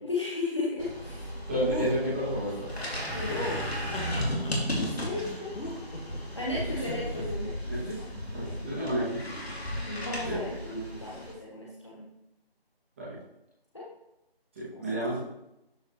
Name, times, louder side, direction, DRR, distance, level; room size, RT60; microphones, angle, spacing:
voice 1, 0.0-1.3 3.1-5.6 6.3-8.1 8.4-8.9 9.8-10.5 11.0-12.1 13.7-13.9 14.7-15.0, left 2 dB, 30° left, -5 dB, 0.9 m, -36 dB
sound 1, 0.8-11.3, equal, 85° left, 2.4 m, -35 dB
voice 2, 1.5-2.7 6.5-6.9 7.7-8.0 8.3-9.2 10.2-11.0 13.0-13.2 14.5-15.2, equal, 15° right, -11 dB, 2.2 m, -31 dB
sound 2, 1.7-1.9 3.3-4.5 5.2-6.2 6.7-7.2, left 1 dB, 60° left, 1.8 m, -37 dB
12.0 x 4.9 x 3.1 m, 0.88 s
figure-of-eight pair, 165°, 31 cm